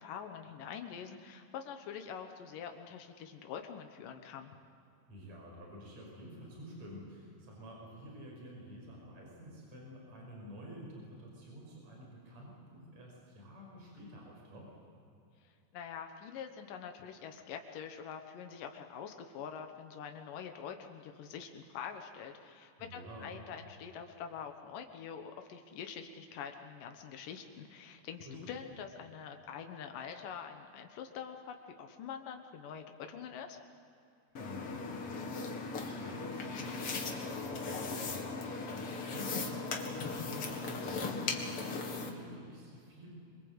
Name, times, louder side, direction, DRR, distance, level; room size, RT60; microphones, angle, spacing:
voice 1, 0.0-4.5 15.7-33.6, left 7 dB, 90° left, 5 dB, 2.9 m, -45 dB
voice 2, 5.1-14.7 22.8-23.3 28.3-28.4 34.3-34.9 35.4-43.2, equal, 55° right, -2 dB, 7.0 m, -50 dB
sound 1, 34.4-42.1, left 4 dB, 45° left, 2.7 m, -38 dB
26.0 x 23.5 x 8.1 m, 2.6 s
omnidirectional pair, 3.7 m